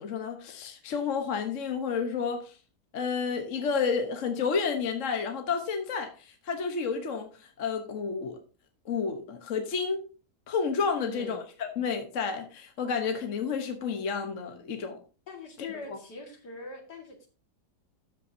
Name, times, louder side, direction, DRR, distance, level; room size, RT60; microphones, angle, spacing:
voice 1, 0.0-2.5 2.9-7.3 7.6-8.4 8.8-10.0 10.5-15.0 15.9-16.0, left 5 dB, 50° left, 1.3 m, -30 dB
voice 2, 11.0-11.4 15.3-17.3, left 3 dB, 65° left, 2.6 m, -42 dB
12.5 x 8.3 x 2.7 m
omnidirectional pair, 1.9 m